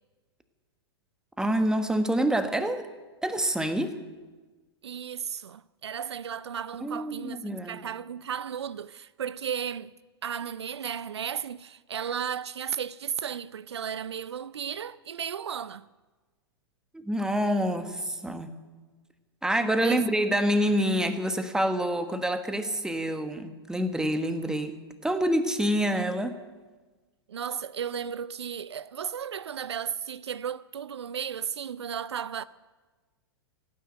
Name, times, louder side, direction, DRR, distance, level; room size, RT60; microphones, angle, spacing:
voice 1, 1.4-2.9 3.2-4.0 6.8-7.9 16.9-18.6 19.4-26.4, equal, 5° right, 1.4 m, -27 dB
voice 2, 4.8-9.9 10.2-15.9 19.8-20.1 27.3-32.4, right 8 dB, 75° right, 0.5 m, -34 dB
16.5 x 9.5 x 9.2 m
figure-of-eight pair, 105°, 14 cm